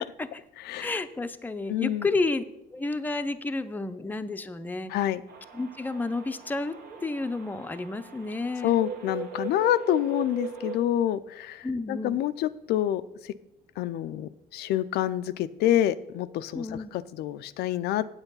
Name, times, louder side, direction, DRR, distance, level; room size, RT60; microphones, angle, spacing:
voice 1, 0.8-2.4 2.7-4.9 5.5-8.8 11.6-12.2 16.5-16.9, left 3 dB, 10° left, 9 dB, 0.5 m, -31 dB
voice 2, 1.7-2.1 4.9-5.2 8.6-13.0 13.8-16.6 16.9-18.1, left 12 dB, 75° left, 12 dB, 0.4 m, -27 dB
sound 1, 5.3-10.8, right 5 dB, 65° right, 1.3 m, -39 dB
8.1 x 8.0 x 5.5 m, 0.85 s
cardioid pair, 110°, 17 cm